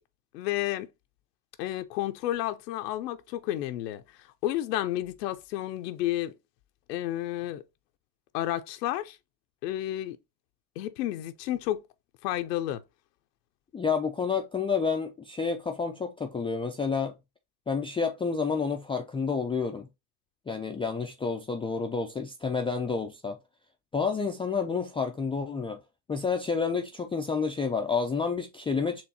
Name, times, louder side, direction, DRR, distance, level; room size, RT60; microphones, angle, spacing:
voice 1, 0.3-0.9 1.6-6.3 6.9-7.6 8.3-9.2 9.6-10.2 10.8-11.8 12.2-12.8, left 14 dB, 85° left, 0.6 m, -31 dB
voice 2, 13.7-17.1 17.7-19.9 20.5-23.4 23.9-25.8 26.1-29.0, left 5 dB, 15° left, 0.3 m, -29 dB
4.4 x 3.1 x 2.7 m
supercardioid pair, 95°, 48 cm